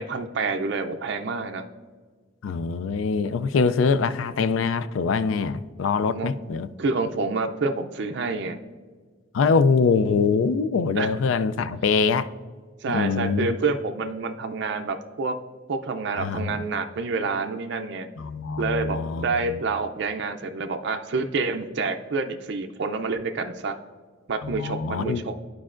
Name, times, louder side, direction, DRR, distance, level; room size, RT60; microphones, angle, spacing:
voice 1, 0.0-1.6 6.1-6.3 6.8-8.6 11.0-11.1 12.8-15.4 15.7-18.1 18.6-23.8 24.3-25.3, right 3 dB, 60° right, 0.4 m, -28 dB
voice 2, 2.4-6.7 9.3-12.3 12.9-13.6 16.2-16.6 18.2-19.6 24.4-25.2, left 5 dB, 80° left, 0.4 m, -24 dB
13.5 x 4.7 x 2.5 m
head